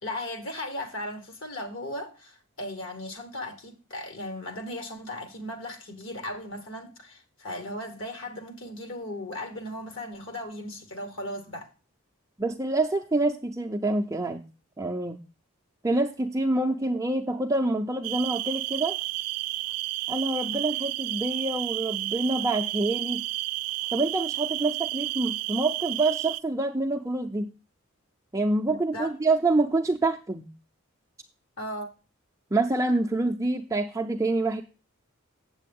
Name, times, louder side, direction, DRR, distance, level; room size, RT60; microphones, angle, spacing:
voice 1, 0.0-11.7 20.5-20.6 28.7-29.1 31.6-31.9, left 1 dB, 60° left, 1.2 m, -37 dB
voice 2, 12.4-14.4 14.8-15.2 15.8-19.0 20.1-23.2 23.9-27.5 28.3-30.5 32.5-34.6, right 2 dB, 15° right, 0.4 m, -26 dB
sound 1, 18.0-26.4, right 17 dB, 85° right, 0.3 m, -31 dB
8.4 x 7.5 x 3.5 m
head